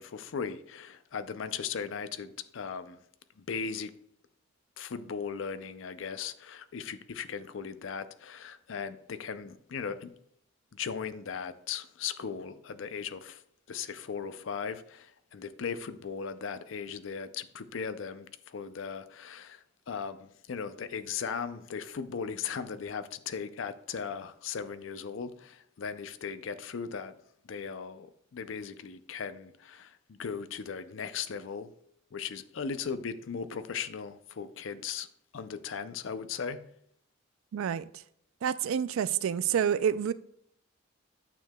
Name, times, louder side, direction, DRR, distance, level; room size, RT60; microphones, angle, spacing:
voice 1, 0.0-3.0 3.4-3.9 4.8-10.1 10.7-13.4 13.7-27.1 27.5-31.7 32.1-35.1 35.3-36.7, left 6 dB, 70° left, 0.5 m, -38 dB
voice 2, 37.5-37.9 38.4-40.1, right 8 dB, 85° right, 0.3 m, -28 dB
9.0 x 6.7 x 2.3 m
head